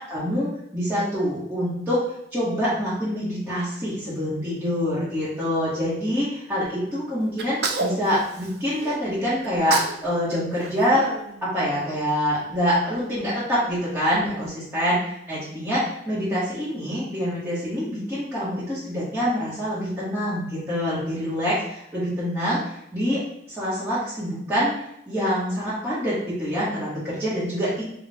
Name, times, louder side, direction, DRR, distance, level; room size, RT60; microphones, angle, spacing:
voice 1, 0.1-2.0 2.3-11.1 11.4-15.0 15.3-23.2 23.5-24.7 25.1-27.8, equal, 10° right, -12 dB, 1.0 m, -25 dB
Sneeze, 7.4-9.0 9.4-10.0 10.3-11.8, right 3 dB, 70° right, 0.4 m, -30 dB
3.4 x 2.3 x 4.1 m, 0.78 s
head